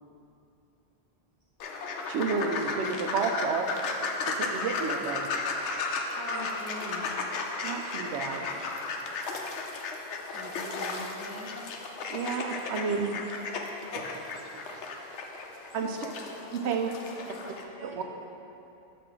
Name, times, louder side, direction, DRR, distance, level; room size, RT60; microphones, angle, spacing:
sound 1, 1.6-17.6, left 3 dB, 90° left, 0.9 m, -35 dB
voice 1, 2.1-3.7 4.2-5.3 7.6-8.5 12.1-13.1 14.0-14.8 15.7-16.0 16.5-16.9 17.8-18.0, right 5 dB, 75° right, 4 dB, 0.9 m, -31 dB
voice 2, 6.1-7.1 10.3-11.6, equal, 15° right, -7 dB, 1.2 m, -41 dB
voice 3, 15.8-16.1 16.6-18.2, right 3 dB, 35° right, -3 dB, 1.0 m, -47 dB
7.0 x 3.3 x 5.9 m, 2.7 s
omnidirectional pair, 1.1 m